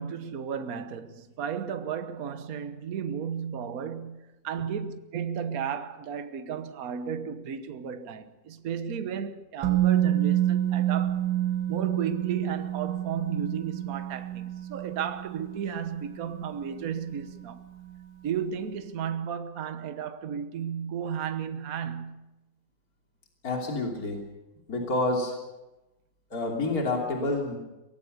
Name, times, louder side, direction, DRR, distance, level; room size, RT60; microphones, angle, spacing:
voice 1, 0.0-11.3 11.7-17.6 18.2-22.2, right 7 dB, 55° right, 1.5 m, -34 dB
Musical instrument, 9.6-17.5 17.8-18.0, right 12 dB, 85° right, 2.7 m, -29 dB
voice 2, 23.4-24.2 24.7-25.4 26.3-27.6, left 2 dB, 50° left, 3.6 m, -28 dB
23.5 x 19.0 x 6.7 m
omnidirectional pair, 2.0 m